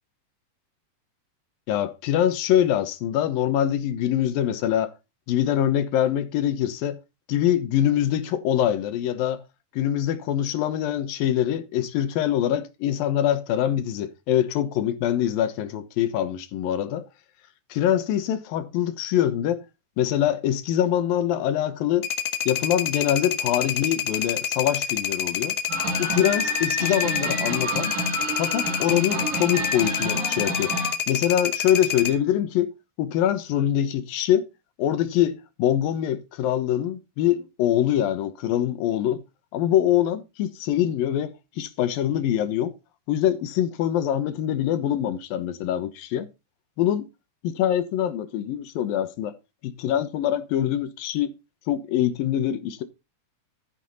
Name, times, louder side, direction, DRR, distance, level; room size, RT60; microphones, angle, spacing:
voice 1, 1.7-4.9 5.3-7.0 7.3-9.4 9.7-17.0 17.7-19.6 20.0-22.1 22.5-25.6 26.0-27.9 28.4-30.8 31.1-32.7 33.0-34.5 34.8-39.2 39.5-42.7 43.1-46.3 46.8-47.1 47.4-49.3 49.6-51.3 51.7-52.8, left 11 dB, 85° left, 3.0 m, -24 dB
sound 1, 22.0-32.1, left 9 dB, 65° left, 2.6 m, -28 dB
sound 2, 25.7-30.9, right 1 dB, 80° right, 6.0 m, -29 dB
13.0 x 9.1 x 4.1 m
omnidirectional pair, 4.0 m